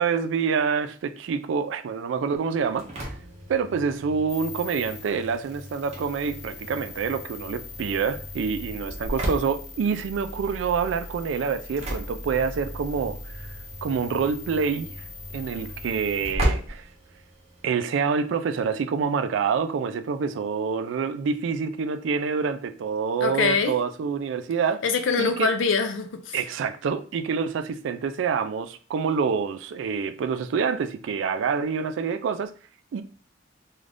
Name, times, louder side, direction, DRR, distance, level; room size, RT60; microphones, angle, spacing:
voice 1, 0.0-2.9 3.5-13.5 13.8-14.9 15.3-16.8 17.6-24.8 25.2-25.5 26.3-32.5 32.9-33.0, right 6 dB, 80° right, 0.3 m, -27 dB
Engine / Slam, 2.5-17.7, right 1 dB, 35° right, 0.6 m, -36 dB
sound 1, 4.3-16.3, left 2 dB, 60° left, 0.9 m, -40 dB
voice 2, 23.2-23.7 24.8-26.4, left 5 dB, 85° left, 0.4 m, -24 dB
2.5 x 2.4 x 3.3 m
head